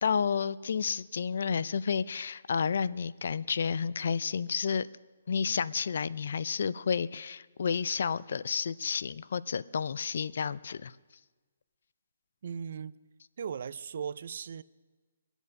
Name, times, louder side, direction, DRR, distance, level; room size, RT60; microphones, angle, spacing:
voice 1, 0.0-4.9 5.3-10.9, left 6 dB, 65° left, 0.4 m, -31 dB
voice 2, 12.4-13.0 13.4-14.6, right 7 dB, 60° right, 0.5 m, -37 dB
23.5 x 8.0 x 6.4 m
hypercardioid pair, 150°, 0 cm